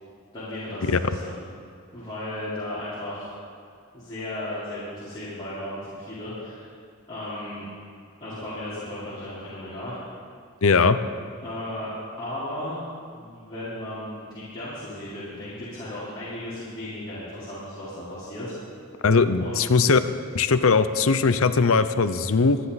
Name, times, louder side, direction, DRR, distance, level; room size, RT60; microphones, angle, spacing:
voice 1, 0.3-1.3 1.9-3.3 3.9-6.7 7.1-7.6 8.2-10.0 11.4-12.8 13.1-18.5 19.4-19.9, left 1 dB, 20° left, -12 dB, 3.9 m, -35 dB
voice 2, 10.6-11.0 19.0-20.0 20.3-22.6, left 4 dB, 65° left, 12 dB, 0.7 m, -19 dB
25.5 x 10.0 x 4.1 m, 2.3 s
head